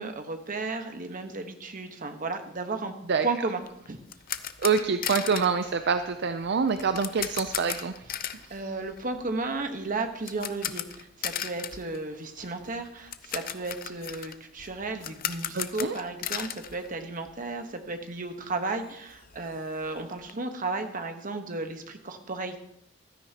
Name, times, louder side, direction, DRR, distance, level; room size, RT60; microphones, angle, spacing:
voice 1, 0.0-2.9 3.2-3.6 3.9-4.0 8.2-22.6, right 3 dB, 45° right, 6 dB, 1.2 m, -34 dB
sound 1, 3.6-17.6 17.9-18.0 18.4-18.5 18.8-20.3, left 10 dB, 45° left, 0.6 m, -37 dB
voice 2, 4.6-8.0 8.4-8.6 15.5-16.0, right 5 dB, 60° right, 9 dB, 0.5 m, -26 dB
15.0 x 13.0 x 2.9 m, 0.80 s
head